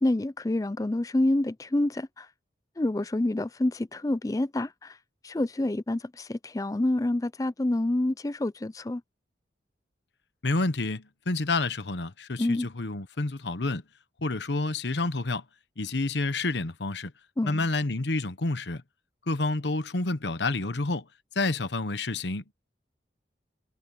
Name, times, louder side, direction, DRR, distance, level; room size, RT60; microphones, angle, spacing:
voice 1, 0.0-2.3 2.8-5.0 5.2-9.0 12.4-12.7 17.4-17.6, left 1 dB, 20° left, 0.4 m, -27 dB
voice 2, 10.4-13.8 14.2-15.4 15.8-17.1 17.4-18.8 19.3-21.1 21.3-22.5, left 2 dB, 75° left, 1.1 m, -29 dB
head